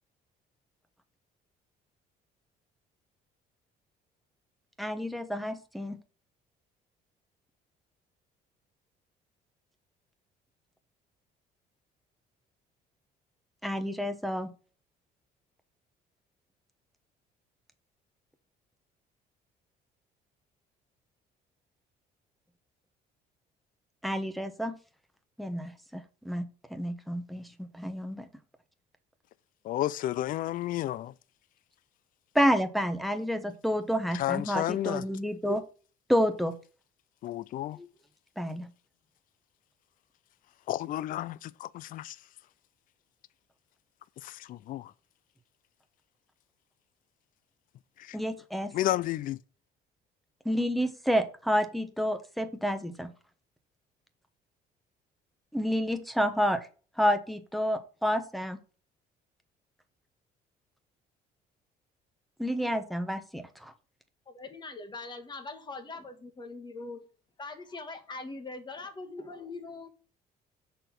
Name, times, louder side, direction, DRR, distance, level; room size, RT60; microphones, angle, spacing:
voice 1, 4.8-6.0 13.6-14.5 24.0-24.8 25.4-28.2 32.3-35.6 36.1-36.6 38.4-38.7 48.1-48.7 50.4-53.1 55.5-56.7 57.0-58.6 62.4-63.7, equal, ahead, 1.0 m, -29 dB
voice 2, 29.6-31.1 34.1-35.0 37.2-37.8 40.7-42.2 44.2-44.9 48.0-48.2 48.7-49.4, left 14 dB, 55° left, 0.4 m, -32 dB
voice 3, 64.3-67.0 67.4-69.9, left 3 dB, 25° left, 1.5 m, -42 dB
6.5 x 4.3 x 5.8 m
cardioid pair, 110°, 17 cm